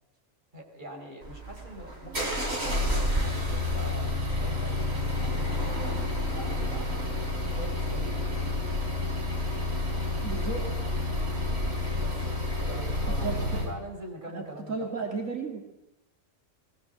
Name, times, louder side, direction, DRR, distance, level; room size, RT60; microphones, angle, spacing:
voice 1, 0.5-6.0 6.3-7.0 7.5-8.5 12.0-14.7, right 1 dB, 35° right, 1 dB, 4.6 m, -43 dB
sound 1, 1.2-13.7, left 2 dB, 55° right, 4.4 m, -29 dB
voice 2, 10.2-10.8 13.1-13.7 14.3-15.7, right 4 dB, 80° right, 2 dB, 2.9 m, -35 dB
21.0 x 18.0 x 7.8 m, 0.86 s
omnidirectional pair, 1.4 m